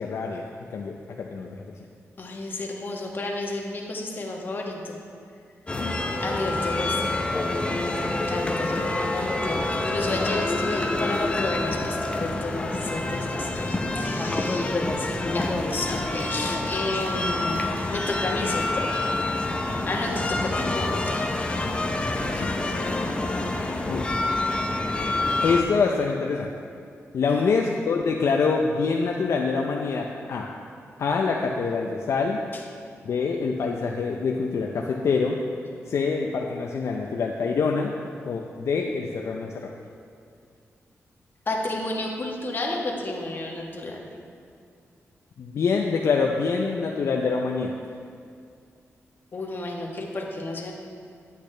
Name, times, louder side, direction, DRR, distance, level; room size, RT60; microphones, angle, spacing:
voice 1, 0.0-1.6 5.7-6.0 8.0-8.1 22.3-22.5 23.9-24.1 25.4-26.5 27.1-30.5 31.0-32.4 33.0-35.4 35.9-37.9 38.2-39.7 45.4-47.7, left 4 dB, 65° left, 0 dB, 0.5 m, -25 dB
voice 2, 2.2-4.9 6.2-7.1 7.6-18.9 19.9-21.2 27.3-27.5 41.5-44.0 49.3-50.7, left 2 dB, 40° left, -1 dB, 1.3 m, -32 dB
sound 1, 5.7-25.6, left 2 dB, 20° left, 0.7 m, -27 dB
10.0 x 8.3 x 3.3 m, 2.4 s
wide cardioid pair, 110°, 5 cm